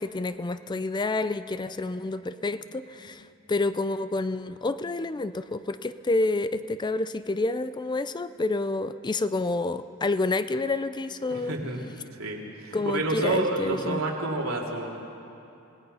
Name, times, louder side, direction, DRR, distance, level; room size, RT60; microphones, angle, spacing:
voice 1, 0.0-11.6 12.7-14.0, left 2 dB, 20° left, 12 dB, 0.4 m, -29 dB
voice 2, 11.3-11.8 12.1-15.0, right 2 dB, 85° right, -1 dB, 3.0 m, -29 dB
27.0 x 18.5 x 5.5 m, 2.7 s
head